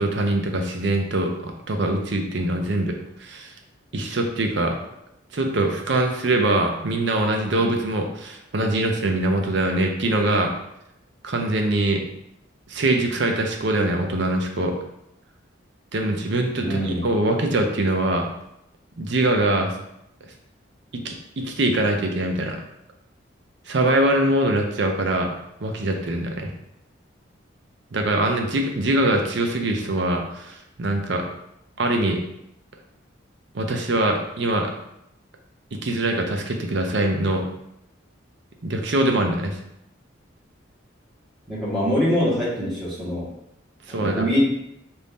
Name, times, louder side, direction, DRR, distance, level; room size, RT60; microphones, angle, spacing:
voice 1, 0.0-2.9 3.2-3.5 3.9-4.8 5.3-10.5 11.2-12.0 12.7-14.7 15.9-18.3 19.0-19.7 21.0-22.6 23.7-25.3 25.6-26.5 27.9-31.2 31.8-32.2 33.5-34.7 35.8-37.4 38.6-39.6 43.9-44.2, right 1 dB, 60° right, 3 dB, 0.6 m, -23 dB
voice 2, 16.6-17.0 41.5-43.3 43.9-44.4, equal, ahead, -10 dB, 1.5 m, -23 dB
4.0 x 2.6 x 3.5 m, 0.80 s
head